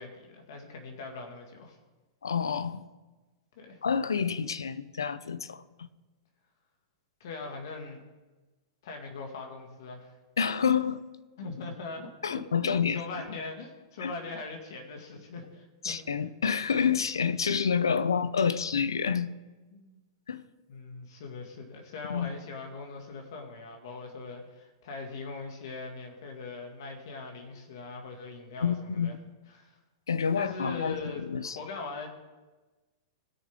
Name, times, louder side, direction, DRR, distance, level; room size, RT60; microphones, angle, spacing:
voice 1, 0.0-1.8 3.6-3.8 7.2-8.0 8.8-10.1 11.4-16.0 19.7-20.0 20.7-29.1 29.5-29.8 30.3-32.1, left 3 dB, 65° left, 2.0 m, -41 dB
voice 2, 2.2-2.9 3.8-5.9 10.4-11.0 12.2-13.0 14.0-14.1 15.8-19.3 20.3-20.5 22.1-22.3 28.6-29.2 30.1-31.6, left 6 dB, 85° left, 0.6 m, -28 dB
20.0 x 6.7 x 3.7 m
hypercardioid pair, 110°, 2 cm